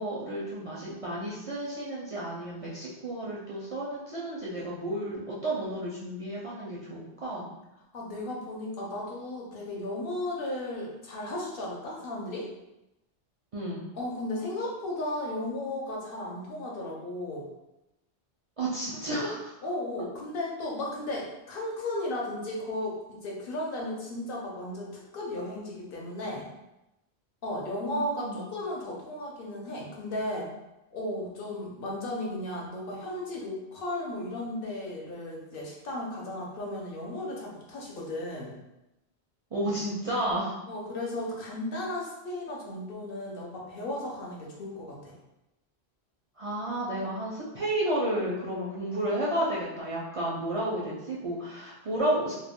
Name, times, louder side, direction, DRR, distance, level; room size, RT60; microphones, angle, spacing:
voice 1, 0.0-7.5 13.5-13.8 18.6-19.5 27.8-28.4 39.5-40.6 46.4-52.3, right 1 dB, 50° right, -7 dB, 0.4 m, -32 dB
voice 2, 7.9-12.5 13.9-17.5 19.6-26.5 27.4-30.5 30.9-38.5 40.7-45.2, left 1 dB, 60° left, -3 dB, 0.8 m, -35 dB
2.3 x 2.1 x 3.5 m, 0.92 s
omnidirectional pair, 1.1 m